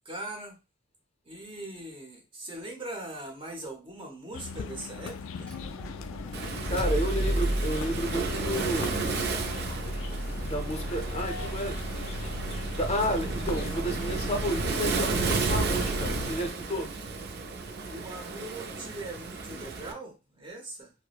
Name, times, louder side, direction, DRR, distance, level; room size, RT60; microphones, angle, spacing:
voice 1, 0.0-0.6 1.2-5.5 17.9-20.9, right 2 dB, 25° right, 0.9 m, -41 dB
sound 1, 4.3-16.3, left 5 dB, 80° left, 0.3 m, -40 dB
Motor vehicle (road), 5.4-16.6, right 1 dB, 10° left, 1.0 m, -34 dB
Waves surf, 6.3-19.9, right 4 dB, 55° right, 0.5 m, -33 dB
voice 2, 6.7-9.0 10.4-12.2 12.7-16.9, equal, 30° left, 0.6 m, -32 dB
4.6 x 2.0 x 2.3 m
head